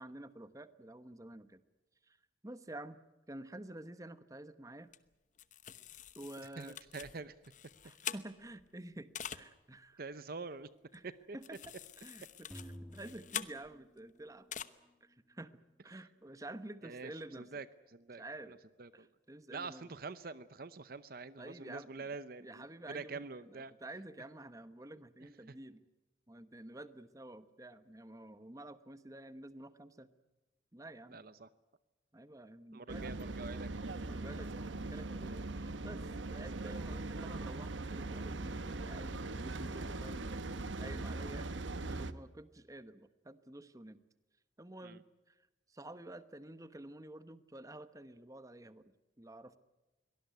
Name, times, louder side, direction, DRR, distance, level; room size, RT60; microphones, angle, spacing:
voice 1, 0.0-1.6 2.0-2.2 2.4-3.0 3.3-4.9 6.1-6.8 7.8-10.2 10.9-14.5 15.0-17.5 18.1-18.6 18.9-19.9 21.4-25.8 26.3-30.1 30.7-31.2 32.1-33.2 34.0-40.4 40.8-44.0 44.6-49.6, right 1 dB, 20° right, 12 dB, 1.0 m, -50 dB
sound 1, 4.9-5.0 5.4-8.7 9.1-9.4 10.9-11.0 11.4-14.0 14.5-14.6, left 9 dB, 40° left, 1.0 m, -45 dB
voice 2, 6.6-7.3 10.0-10.7 11.0-11.1 16.8-17.1 17.4-17.7 17.9-18.2 18.8-19.1 19.5-23.7 31.1-31.5 32.7-34.1 44.8-45.0, right 4 dB, 50° right, 15 dB, 0.7 m, -45 dB
sound 2, 12.5-14.7, equal, ahead, 2.1 m, -52 dB
sound 3, 32.9-42.1, right 2 dB, 85° right, 1.1 m, -40 dB
23.0 x 18.5 x 9.3 m, 1.1 s
head